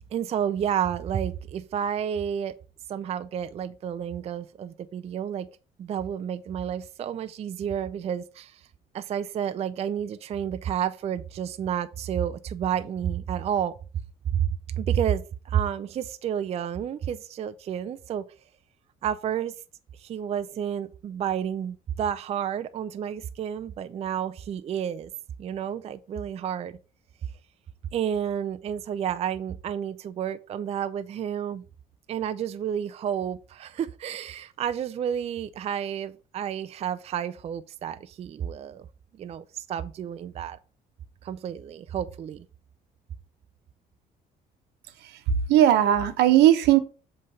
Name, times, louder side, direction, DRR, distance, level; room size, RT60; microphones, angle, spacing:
voice 1, 0.1-2.6 2.9-5.5 5.8-8.6 8.9-13.7 14.3-14.5 14.8-18.3 19.0-19.5 20.0-25.1 25.4-26.8 27.9-31.6 32.1-38.9 39.2-40.6 41.2-42.5, right 9 dB, 40° right, 0.4 m, -30 dB
voice 2, 45.0-46.8, right 11 dB, 80° right, 0.9 m, -19 dB
7.5 x 3.2 x 5.5 m
cardioid pair, 110°, 17 cm